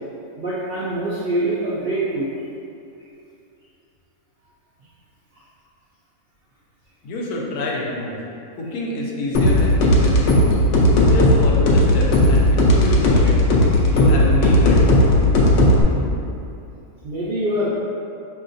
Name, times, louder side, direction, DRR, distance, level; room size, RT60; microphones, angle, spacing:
voice 1, 0.4-2.3 17.0-17.7, right 1 dB, 70° right, -8 dB, 0.5 m, -24 dB
voice 2, 7.0-8.2 8.5-10.4 10.9-13.4 13.9-14.9, left 1 dB, 85° left, -3 dB, 1.1 m, -27 dB
sound 1, 9.3-15.8, left 1 dB, 65° left, 0.8 m, -15 dB
4.7 x 2.9 x 2.6 m, 2.6 s
omnidirectional pair, 1.6 m